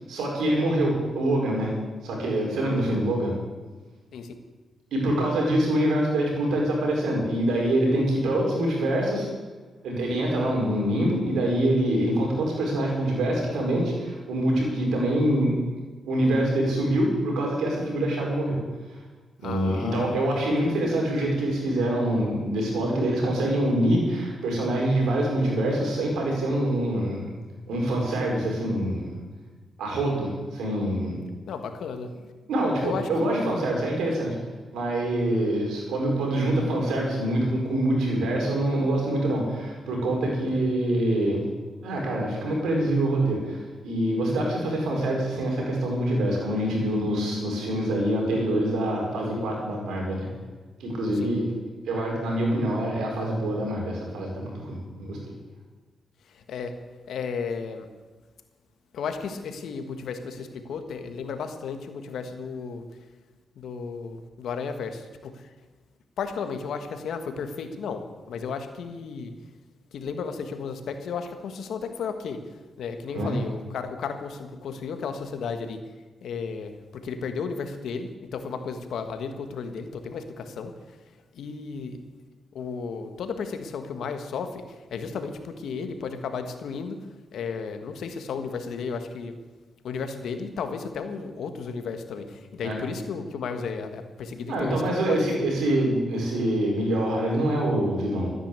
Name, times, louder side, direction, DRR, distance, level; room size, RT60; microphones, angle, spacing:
voice 1, 0.0-1.7 2.0-3.3 4.9-9.3 9.8-15.6 16.0-18.6 18.9-19.0 19.4-27.3 27.7-29.2 29.8-31.2 32.5-34.3 34.7-41.4 41.8-50.3 50.8-51.5 51.8-55.3 73.1-73.3 92.6-92.8 94.5-98.3, right 1 dB, 85° right, -1 dB, 5.0 m, -25 dB
voice 2, 19.4-20.4 31.5-32.1 32.8-33.5 44.4-44.6 51.1-51.3 56.2-56.7 57.1-57.9 58.9-62.8 63.5-65.5 66.2-69.3 69.9-75.8 76.2-81.0 81.3-82.0 82.5-89.3 89.8-95.5, left 5 dB, 80° left, 7 dB, 1.7 m, -34 dB
14.0 x 10.0 x 8.3 m, 1.3 s
cardioid pair, 60°, 0 cm